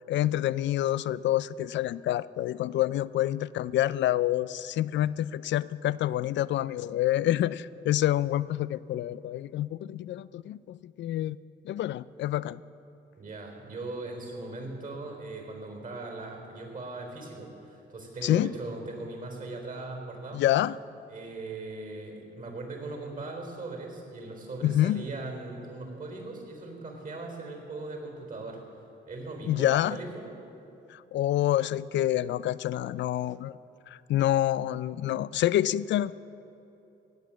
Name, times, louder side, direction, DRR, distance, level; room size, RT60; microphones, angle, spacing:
voice 1, 0.1-11.4 11.6-12.6 18.2-18.5 20.3-20.8 24.6-25.1 29.5-30.0 30.9-33.5 33.9-36.1, left 13 dB, 65° left, 18 dB, 0.4 m, -27 dB
voice 2, 13.2-20.4 21.1-28.6 29.1-30.4, right 2 dB, 45° right, 2 dB, 4.1 m, -39 dB
17.5 x 8.3 x 7.5 m, 2.9 s
cardioid pair, 90°, 20 cm